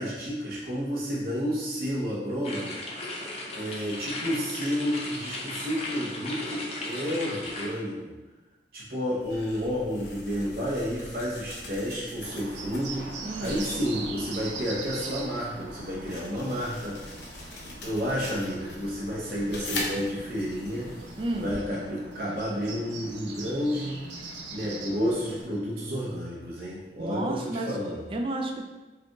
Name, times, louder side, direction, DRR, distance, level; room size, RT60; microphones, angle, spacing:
voice 1, 0.0-2.8 3.5-8.1 8.7-17.0 17.6-20.9 21.3-28.1, equal, 55° right, -7 dB, 0.8 m, -31 dB
sound 1, 2.4-7.7, left 2 dB, 35° left, 0.6 m, -36 dB
sound 2, 9.2-21.6, left 2 dB, 80° left, 0.7 m, -42 dB
Bird, 12.2-25.4, right 2 dB, 85° right, 0.5 m, -42 dB
voice 2, 13.2-13.6 21.2-21.5 27.0-27.7 28.1-28.7, right 2 dB, 30° right, 2 dB, 0.3 m, -31 dB
4.8 x 2.3 x 2.9 m, 1.2 s
head